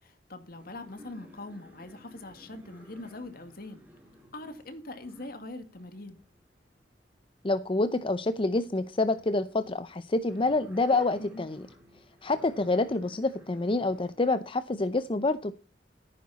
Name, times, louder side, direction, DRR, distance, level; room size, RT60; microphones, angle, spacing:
voice 1, 0.0-3.9 4.3-6.2 11.2-11.5, left 2 dB, 60° left, 2.2 m, -43 dB
sound 1, 0.6-8.3 8.6-14.1 14.6-14.8, equal, 10° right, 5.9 m, -56 dB
voice 2, 7.4-11.6 12.2-15.5, left 2 dB, 30° left, 0.6 m, -27 dB
14.5 x 9.5 x 4.1 m
head